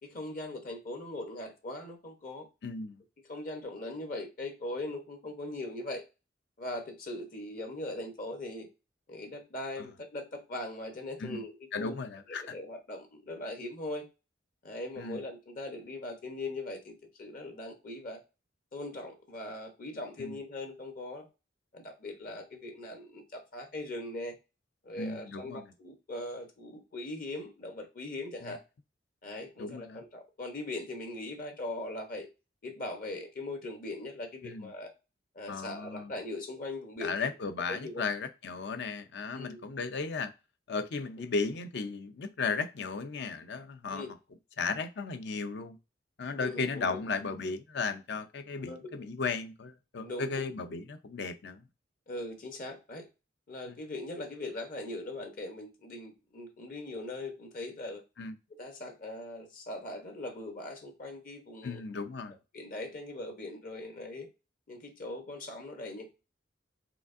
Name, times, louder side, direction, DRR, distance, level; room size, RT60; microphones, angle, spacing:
voice 1, 0.0-2.5 3.3-6.0 6.6-8.7 9.1-12.0 12.3-14.1 14.6-18.2 18.7-21.3 21.7-24.4 24.8-28.6 29.2-32.3 32.6-34.9 35.3-37.3 37.7-38.0 39.3-39.6 43.9-44.1 46.4-47.0 48.7-49.1 50.0-50.5 52.1-53.1 53.5-58.0 58.5-61.8 62.5-64.3 64.7-66.1, left 2 dB, 50° left, 0.9 m, -40 dB
voice 2, 2.6-3.0 9.8-9.9 11.2-11.4 11.7-12.5 15.0-15.2 20.2-20.4 25.0-25.6 28.4-28.6 29.6-30.0 34.4-34.7 35.5-36.1 37.0-40.3 40.7-44.0 44.6-45.8 46.2-51.6 53.7-53.8 58.2-58.3 61.6-62.4, left 4 dB, 65° left, 0.5 m, -35 dB
4.9 x 3.4 x 2.5 m
head